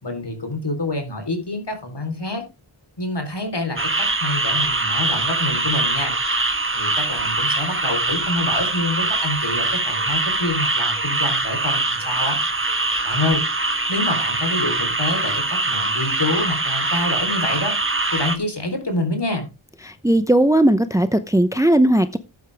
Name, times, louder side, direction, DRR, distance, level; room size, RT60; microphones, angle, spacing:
voice 1, 0.0-2.4 3.0-6.2 6.7-12.4 13.0-13.4 13.9-17.8 18.1-19.5, left 2 dB, 55° left, 5 dB, 4.0 m, -27 dB
sound 1, 3.8-18.4, right 2 dB, 25° right, 1.4 m, -23 dB
voice 2, 19.8-22.2, right 1 dB, 5° right, 11 dB, 0.8 m, -17 dB
13.0 x 9.2 x 3.5 m, 0.27 s
wide cardioid pair, 65°, 50 cm